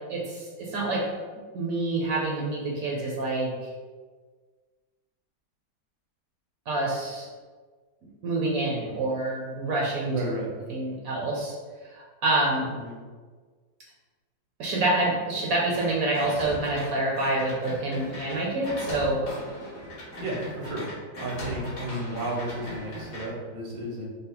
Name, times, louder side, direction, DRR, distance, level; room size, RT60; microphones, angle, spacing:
voice 1, 0.1-1.1 1.5-3.7 6.7-7.3 8.2-10.1 10.7-11.5 11.9-12.7 14.6-19.3, right 2 dB, 60° right, -2 dB, 1.1 m, -27 dB
voice 2, 10.1-10.5 12.8-13.0 20.2-20.9 21.2-24.1, right 1 dB, 40° right, -3 dB, 0.8 m, -32 dB
sound 1, 15.8-16.8 17.2-23.3, left 1 dB, 70° left, 1.9 m, -38 dB
5.6 x 2.0 x 3.9 m, 1.5 s
omnidirectional pair, 1.8 m